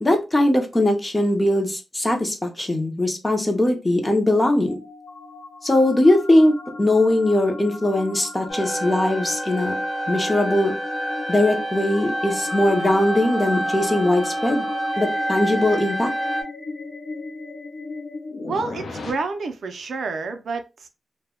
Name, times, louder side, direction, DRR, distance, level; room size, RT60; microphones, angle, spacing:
voice 1, 0.0-4.8 5.6-6.5 6.8-9.7 10.1-10.7 11.3-14.6 15.0-16.1, left 1 dB, 15° left, 4 dB, 0.5 m, -20 dB
sound 1, 4.0-19.1, left 3 dB, 70° left, 0.6 m, -36 dB
sound 2, 8.5-16.4, right 1 dB, 35° left, 0.9 m, -28 dB
voice 2, 18.4-20.9, right 4 dB, 65° right, 7 dB, 0.4 m, -29 dB
2.1 x 2.0 x 3.4 m, 0.28 s
wide cardioid pair, 175°, 0 cm